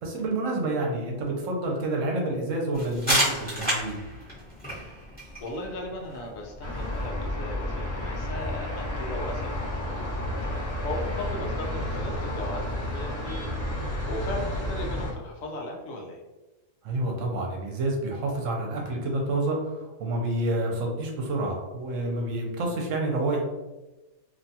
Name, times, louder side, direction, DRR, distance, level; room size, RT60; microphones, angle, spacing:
voice 1, 0.0-4.0 16.8-23.4, right 2 dB, 75° right, 0 dB, 1.0 m, -28 dB
sound 1, 2.7-8.3, right 1 dB, 10° left, 0.9 m, -32 dB
voice 2, 5.4-13.4 14.1-16.2, left 1 dB, 75° left, 0 dB, 1.0 m, -37 dB
sound 2, 6.6-15.1, left 1 dB, 20° right, 1.1 m, -31 dB
2.8 x 2.2 x 2.7 m, 1.1 s
omnidirectional pair, 1.4 m